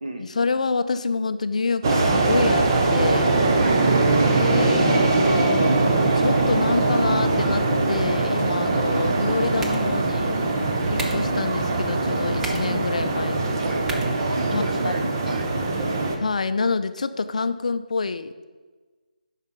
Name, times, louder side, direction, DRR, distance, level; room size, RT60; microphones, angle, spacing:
voice 1, 0.2-3.3 4.3-10.4 10.9-13.6 14.5-14.9 16.2-18.3, left 4 dB, 50° left, 11 dB, 0.5 m, -27 dB
sound 1, 1.8-16.2, right 2 dB, 25° right, 0.8 m, -21 dB
sound 2, 9.1-15.1, right 2 dB, 5° right, 0.3 m, -40 dB
voice 2, 14.2-15.5, right 2 dB, 60° right, 4 dB, 1.5 m, -32 dB
9.0 x 5.8 x 5.9 m, 1.4 s
hypercardioid pair, 170°, 5 cm